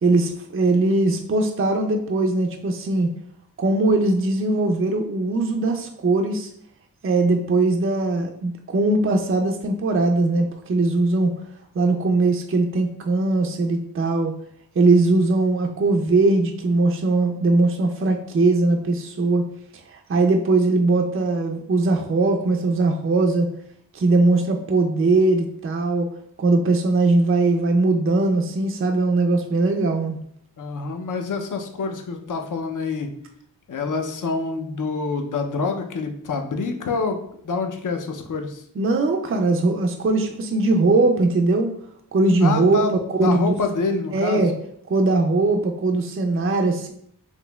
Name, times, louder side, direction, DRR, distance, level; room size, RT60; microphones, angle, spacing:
voice 1, 0.0-3.1 3.6-6.5 7.0-11.3 11.7-14.3 14.8-19.4 19.9-23.5 23.9-26.1 26.4-30.2 38.8-41.7 42.1-43.5 44.1-44.5 44.9-46.9, right 2 dB, 35° right, 3 dB, 0.4 m, -20 dB
voice 2, 30.6-33.1 33.7-38.6 42.4-44.4, left 4 dB, 50° left, 5 dB, 0.6 m, -27 dB
4.2 x 2.8 x 2.2 m, 0.67 s
cardioid pair, 50°, 40 cm